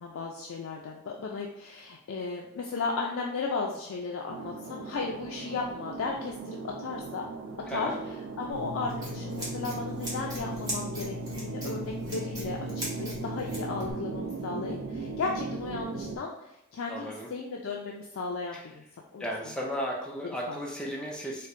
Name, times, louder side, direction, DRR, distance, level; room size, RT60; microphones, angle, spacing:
voice 1, 0.0-7.2 7.7-7.9 8.4-18.8 19.1-19.5 20.5-20.6, left 4 dB, 85° left, -1 dB, 0.4 m, -35 dB
sound 1, 4.3-16.2, right 4 dB, 80° right, 0.4 m, -38 dB
voice 2, 7.7-8.0 16.9-17.3 18.5-18.7 19.2-21.5, equal, 5° left, -2 dB, 0.4 m, -35 dB
Scissors, 8.5-13.9, left 2 dB, 20° right, 1.0 m, -38 dB
4.3 x 2.1 x 2.5 m, 0.84 s
head